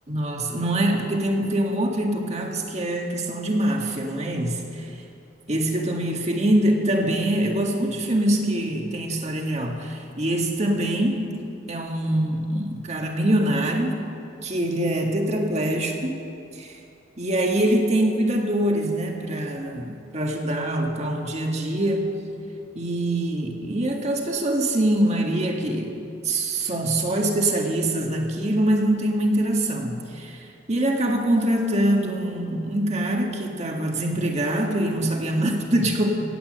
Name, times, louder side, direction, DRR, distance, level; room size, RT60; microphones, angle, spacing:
voice 1, 0.1-4.9 5.5-11.3 11.7-13.9 14.4-16.2 16.6-16.8 17.2-22.1 22.7-36.1, right 1 dB, 35° right, 2 dB, 1.7 m, -24 dB
17.0 x 8.8 x 7.6 m, 2.5 s
head